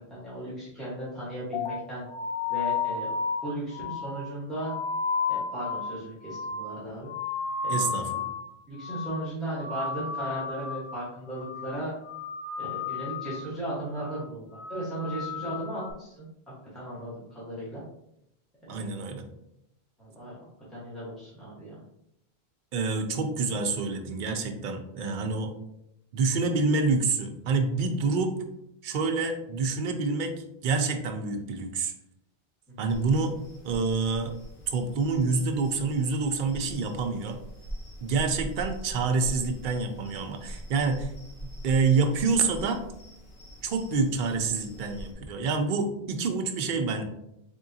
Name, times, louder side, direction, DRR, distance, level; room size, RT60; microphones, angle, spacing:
voice 1, 0.1-2.1 2.5-3.1 3.4-4.7 5.3-7.1 7.6-8.1 8.7-11.9 12.6-16.3 16.7-17.8 18.6-18.9 20.0-20.4 20.7-21.8, right 1 dB, ahead, -9 dB, 1.2 m, -36 dB
sound 1, 1.5-8.5 8.8-9.3 9.5-11.0 11.3-11.7 12.0-13.5 13.8-14.2 14.5-15.9, left 5 dB, 50° left, 0.3 m, -33 dB
voice 2, 7.7-8.3 18.7-19.2 22.7-25.5 26.1-28.4 28.8-30.3 30.6-31.9 32.8-33.3 33.6-34.3 34.7-37.4 38.0-41.1 41.6-42.8 43.6-47.0, right 4 dB, 60° right, 5 dB, 0.6 m, -27 dB
sound 2, 32.9-45.1, equal, 70° left, 1.2 m, -43 dB
3.6 x 3.6 x 2.7 m, 0.81 s
omnidirectional pair, 1.1 m